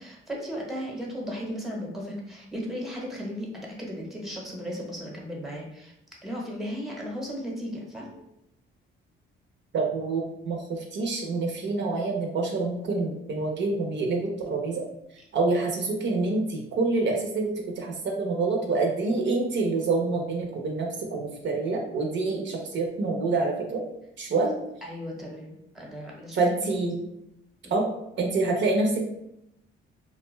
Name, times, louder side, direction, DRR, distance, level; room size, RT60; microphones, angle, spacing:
voice 1, 0.0-5.9 6.2-8.2 24.2-24.3 24.8-26.4 27.6-27.8, equal, ahead, -2 dB, 0.8 m, -36 dB
voice 2, 9.7-14.8 15.3-23.8 24.2-24.6 26.3-27.1 27.7-27.8 28.2-29.0, right 3 dB, 60° right, 0 dB, 0.6 m, -27 dB
2.5 x 2.2 x 3.0 m, 0.80 s
cardioid pair, 80°, 21 cm